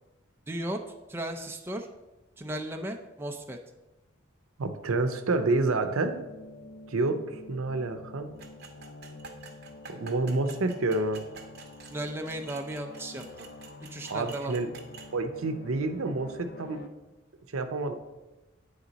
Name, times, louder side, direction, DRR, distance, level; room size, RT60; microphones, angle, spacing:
voice 1, 0.5-0.8 1.1-1.9 2.4-3.6 11.9-13.2 13.9-14.6, right 1 dB, 10° right, 4 dB, 0.4 m, -35 dB
voice 2, 4.6-6.2 6.9-8.3 9.9-11.2 14.1-14.7 15.1-16.9 17.5-17.9, right 2 dB, 85° right, 7 dB, 0.6 m, -28 dB
sound 1, 6.1-16.9, left 2 dB, 55° left, 0.4 m, -48 dB
sound 2, 8.4-15.1, right 4 dB, 50° right, 0.7 m, -49 dB
9.1 x 3.5 x 3.9 m, 1.1 s
head